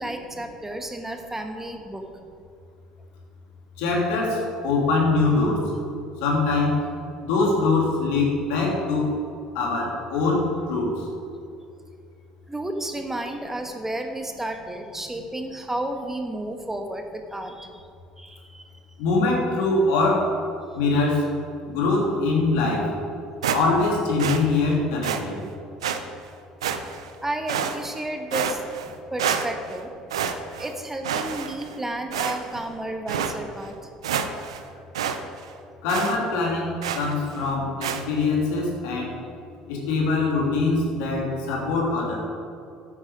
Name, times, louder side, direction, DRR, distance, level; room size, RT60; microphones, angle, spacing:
voice 1, 0.0-2.0 12.5-17.9 18.2-18.7 27.2-28.6 29.1-29.9 30.6-33.9 34.4-34.8, right 1 dB, 10° right, 4 dB, 1.4 m, -32 dB
voice 2, 3.8-5.6 6.2-6.8 7.2-9.1 9.5-10.9 19.0-20.3 20.7-21.2 21.7-22.9 23.5-25.4 35.8-39.1 39.7-42.2, left 3 dB, 70° left, -2 dB, 2.9 m, -23 dB
sound 1, 23.4-23.9 24.2-24.4 25.0-25.2 25.8-26.0 26.6-27.1 27.5-28.0 28.3-28.9 29.2-29.8 30.1-30.7 31.0-31.7 32.1-32.6 33.1-33.3 33.7-33.8 34.0-34.6 34.9-35.2 35.4-35.5 35.9-36.2 36.8-37.1 37.8-38.0, right 8 dB, 85° right, 0.7 m, -28 dB
12.0 x 8.9 x 5.0 m, 2.5 s
hypercardioid pair, 60°, 3 cm